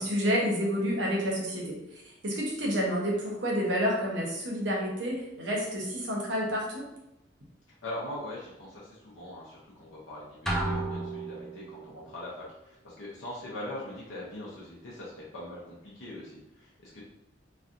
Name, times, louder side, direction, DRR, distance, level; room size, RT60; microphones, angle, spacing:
voice 1, 0.0-6.9, equal, 75° right, -2 dB, 0.8 m, -29 dB
voice 2, 7.8-17.0, left 1 dB, 90° left, -6 dB, 0.7 m, -41 dB
sound 1, 10.5-11.9, right 2 dB, ahead, 0.3 m, -32 dB
3.2 x 2.4 x 2.6 m, 0.88 s
head